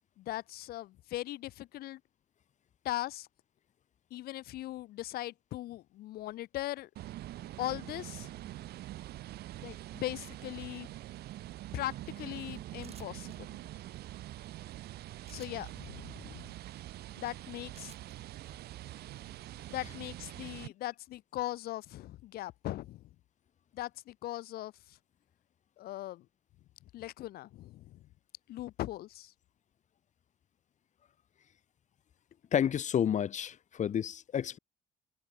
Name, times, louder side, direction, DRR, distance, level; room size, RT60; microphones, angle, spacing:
voice 1, 0.2-2.0 2.8-3.3 4.1-6.9 7.6-8.3 9.6-10.9 11.7-13.6 15.3-16.5 17.2-17.9 19.7-23.0 23.7-25.0 25.8-26.3 26.9-28.1 28.5-29.3, left 15 dB, 65° left, 0.6 m, -39 dB
sound 1, 6.9-20.7, right 15 dB, 70° right, 1.4 m, -45 dB
sound 2, 12.8-13.4 15.2-15.7 17.7-18.2, right 6 dB, 35° right, 5.8 m, -56 dB
voice 2, 32.5-34.6, left 9 dB, 45° left, 1.4 m, -30 dB
cardioid pair, 110°, 17 cm